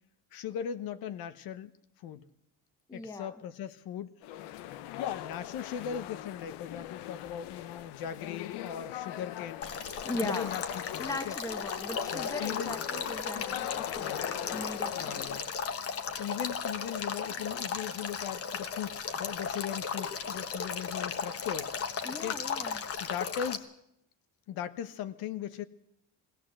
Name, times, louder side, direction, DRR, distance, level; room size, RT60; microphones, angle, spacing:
voice 1, 0.3-1.7 2.0-2.3 2.9-4.4 5.0-9.7 10.2-11.3 12.1-12.8 14.0-14.3 15.0-15.5 15.9-21.7 22.2-22.4 23.0-23.7 24.5-25.6, left 9 dB, 65° left, 12 dB, 1.0 m, -38 dB
voice 2, 2.9-3.3 10.0-10.5 11.0-15.3 22.0-22.9, left 2 dB, 10° left, 9 dB, 1.0 m, -39 dB
sound 1, 4.2-15.4, left 13 dB, 90° left, 1.1 m, -41 dB
Male speech man speaking / Stream / Trickle dribble, 9.6-23.6, left 6 dB, 35° left, 1.2 m, -36 dB
21.0 x 17.0 x 7.7 m, 0.78 s
cardioid pair, 165°, 39 cm